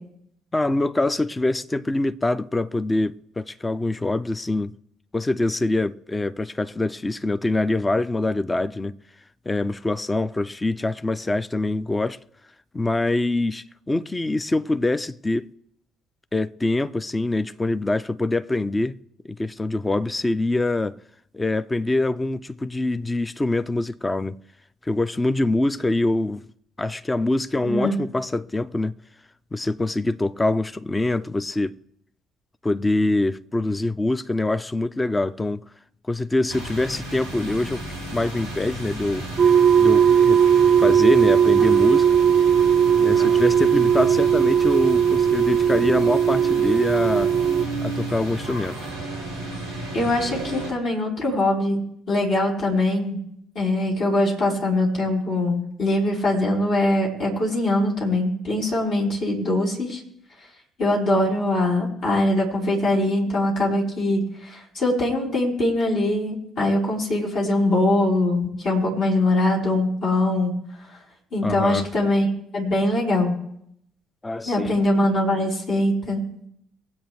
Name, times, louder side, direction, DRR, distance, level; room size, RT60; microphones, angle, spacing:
voice 1, 0.5-4.7 5.1-9.0 9.5-12.2 12.7-15.5 16.3-19.0 19.3-21.0 21.3-24.4 24.9-26.4 26.8-28.9 29.5-31.8 32.6-35.6 36.1-37.8 38.1-39.3 39.8-40.4 40.8-42.1 43.0-47.3 47.8-48.9 71.4-71.9 74.2-74.7, left 2 dB, 20° left, 0.6 m, -24 dB
voice 2, 27.6-27.9 49.9-53.2 53.5-60.0 60.8-70.5 71.3-73.4 74.5-76.2, left 1 dB, 55° left, 4.3 m, -22 dB
sound 1, 36.5-50.7, right 2 dB, 85° left, 2.6 m, -33 dB
sound 2, 39.4-47.7, right 8 dB, 35° right, 0.5 m, -18 dB
23.0 x 8.4 x 3.2 m
figure-of-eight pair, 45°, 0 cm